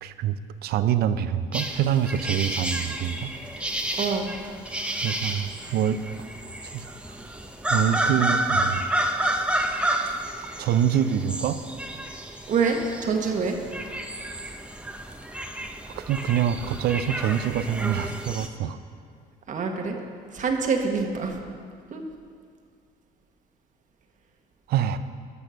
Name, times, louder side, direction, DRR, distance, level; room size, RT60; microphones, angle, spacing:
voice 1, 0.0-3.3 5.0-6.0 6.7-6.8 7.7-8.8 10.6-11.6 15.9-18.8 24.7-25.0, right 9 dB, 70° right, 12 dB, 0.6 m, -25 dB
sound 1, 1.5-18.5, right 1 dB, 5° right, 0.8 m, -30 dB
voice 2, 4.0-4.3 12.5-13.6 19.5-20.0 20.3-21.4 21.9-22.0, right 5 dB, 50° right, 3 dB, 1.4 m, -25 dB
12.5 x 6.4 x 6.3 m, 2.1 s
cardioid pair, 110°, 17 cm